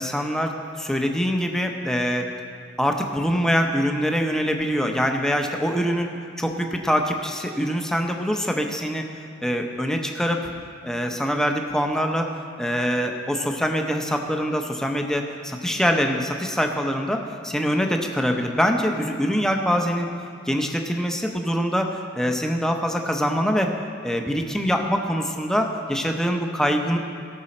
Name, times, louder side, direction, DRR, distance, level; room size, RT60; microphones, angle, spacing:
voice 1, 0.0-2.3 2.8-6.1 6.4-9.1 9.4-10.5 10.8-12.3 12.6-20.1 20.5-23.7 24.0-27.0, equal, 5° left, 3 dB, 0.7 m, -24 dB
18.0 x 6.2 x 4.3 m, 2.4 s
head